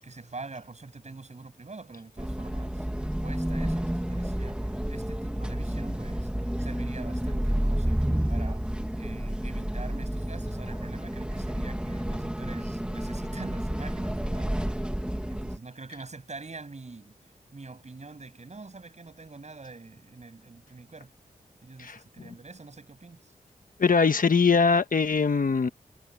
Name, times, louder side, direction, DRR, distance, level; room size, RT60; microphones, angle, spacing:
voice 1, 0.0-2.9 3.2-8.6 9.0-14.5 15.3-17.1 17.5-21.1 21.6-23.3, right 3 dB, 50° right, 7.9 m, -44 dB
sound 1, 2.2-15.6, equal, 5° right, 1.7 m, -30 dB
voice 2, 23.8-25.7, left 5 dB, 60° left, 1.3 m, -22 dB
wide cardioid pair, 80°, 15 cm